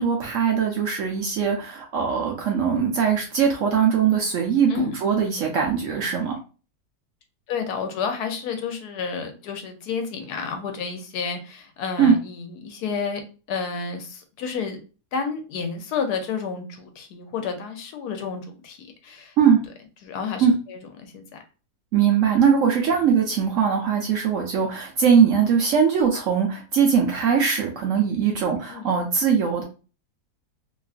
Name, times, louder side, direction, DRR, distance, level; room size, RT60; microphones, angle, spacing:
voice 1, 0.0-6.4 12.0-12.2 19.4-19.6 20.4-20.5 21.9-29.6, right 7 dB, 65° right, 1 dB, 0.8 m, -21 dB
voice 2, 7.5-13.2 13.5-14.8 15.1-19.3 20.0-21.2 28.7-28.9, left 5 dB, 75° left, 6 dB, 1.1 m, -30 dB
2.9 x 2.4 x 2.3 m, 0.35 s
omnidirectional pair, 1.7 m